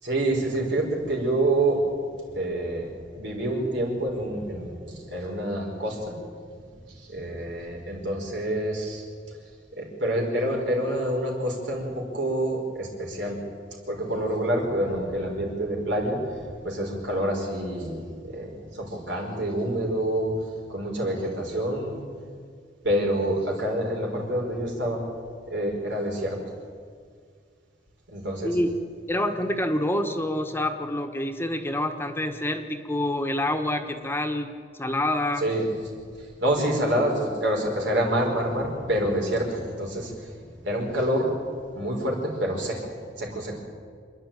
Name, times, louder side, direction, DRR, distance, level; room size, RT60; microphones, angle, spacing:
voice 1, 0.0-1.8 2.3-6.2 7.0-9.0 9.8-13.4 13.9-20.3 20.7-22.0 22.8-25.0 25.5-26.4 28.1-28.6 35.4-35.6 36.2-40.3 40.6-41.3 41.7-43.6, right 1 dB, 85° right, 0 dB, 5.3 m, -27 dB
voice 2, 29.1-35.4, left 1 dB, 15° left, 6 dB, 1.3 m, -27 dB
27.5 x 10.5 x 9.2 m, 2.1 s
head